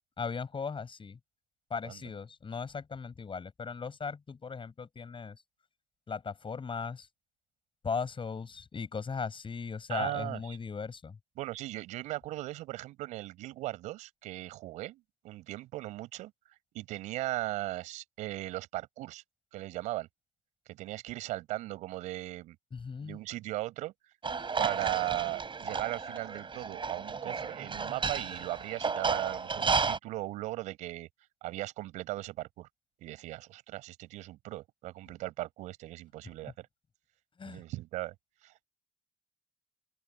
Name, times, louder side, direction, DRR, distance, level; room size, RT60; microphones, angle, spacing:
voice 1, 0.2-1.2 1.7-5.4 6.1-7.1 7.8-11.2 22.7-23.2 37.4-37.6, left 5 dB, 45° left, 7.0 m, -38 dB
voice 2, 9.9-10.6 11.4-19.2 19.5-20.1 20.7-22.6 23.0-23.9 24.6-31.1 31.4-32.7 33.0-36.7 37.5-38.1 38.4-38.7, right 16 dB, 75° right, 5.7 m, -38 dB
sound 1, 24.2-30.0, right 5 dB, 40° right, 6.9 m, -33 dB
open air
hypercardioid pair, 45°, 12 cm